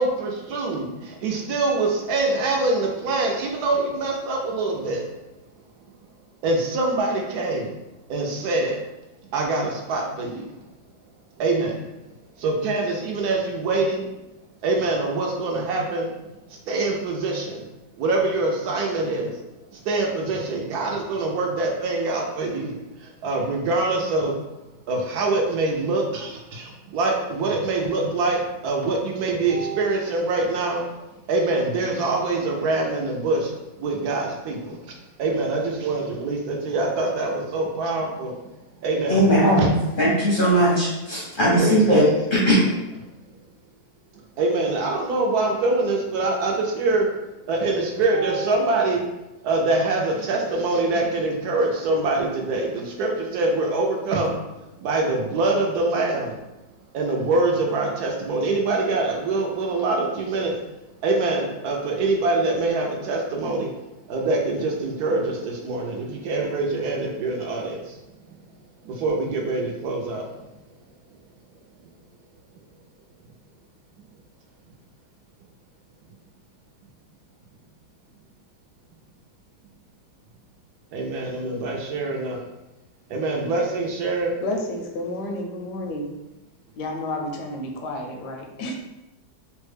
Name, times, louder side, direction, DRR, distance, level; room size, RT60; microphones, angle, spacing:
voice 1, 0.0-5.0 6.4-7.7 8.1-8.8 9.3-10.5 11.4-11.9 12.4-14.1 14.6-16.1 16.5-17.7 17.9-19.4 19.7-24.4 24.9-30.9 31.2-38.4 38.8-39.2 39.6-39.7 41.6-42.0 44.4-47.1 47.5-49.1 49.4-54.4 54.7-56.4 56.9-60.6 61.0-63.7 64.0-68.0 68.3-68.4 68.8-70.5 80.9-82.4 83.1-84.4, right 2 dB, 75° right, 0 dB, 1.0 m, -24 dB
voice 2, 39.1-39.7 40.0-42.0 42.3-42.7, right 1 dB, 50° left, -7 dB, 0.6 m, -18 dB
voice 3, 84.4-86.1 86.8-88.7, left 1 dB, 80° left, 2 dB, 1.2 m, -30 dB
3.2 x 2.1 x 3.2 m, 0.99 s
omnidirectional pair, 1.8 m